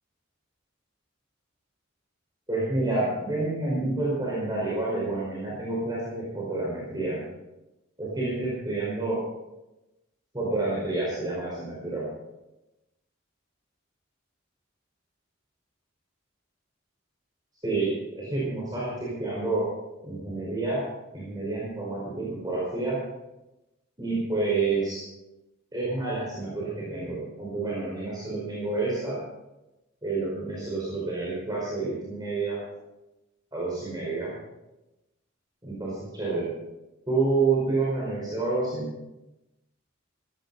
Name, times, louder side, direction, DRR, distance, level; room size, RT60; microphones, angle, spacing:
voice 1, 2.5-7.2 8.0-9.2 10.3-12.0 17.6-19.6 20.0-20.8 21.1-23.0 24.0-25.0 25.7-29.2 30.0-32.6 33.5-34.3 35.6-36.5 37.1-38.9, right 3 dB, 20° right, -6 dB, 4.8 m, -29 dB
16.0 x 15.0 x 4.1 m, 0.97 s
head